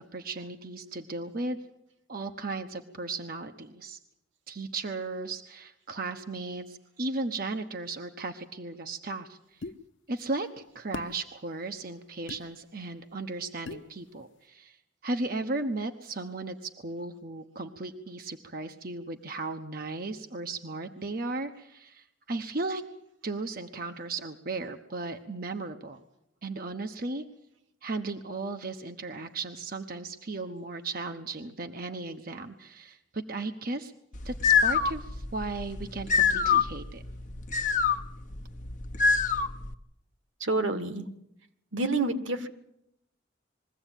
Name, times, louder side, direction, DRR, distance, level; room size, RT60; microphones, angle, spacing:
voice 1, 0.0-1.6 2.1-4.0 4.5-9.6 10.1-14.8 15.0-22.8 23.2-26.0 26.4-27.2 27.8-33.9 34.2-37.0, right 3 dB, 50° right, 6 dB, 1.1 m, -36 dB
sound 1, 9.6-9.8 10.9-11.1 12.3-12.4 13.7-13.9, left 3 dB, 75° left, 0.8 m, -38 dB
sound 2, 34.1-39.7, left 6 dB, 40° left, 1.1 m, -26 dB
voice 2, 40.4-41.0 41.7-42.5, right 2 dB, 80° right, 9 dB, 1.8 m, -28 dB
22.0 x 16.0 x 9.1 m, 0.79 s
head